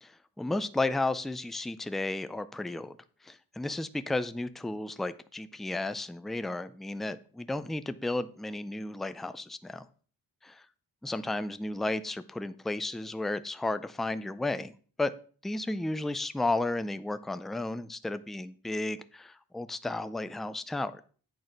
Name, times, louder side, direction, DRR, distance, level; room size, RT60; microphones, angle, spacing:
voice 1, 0.0-3.0 3.2-9.9 10.4-10.6 11.0-14.7 15.0-15.1 15.4-21.0, left 2 dB, ahead, 12 dB, 0.4 m, -33 dB
8.8 x 6.1 x 5.2 m, 0.42 s
wide cardioid pair, 135°, 40 cm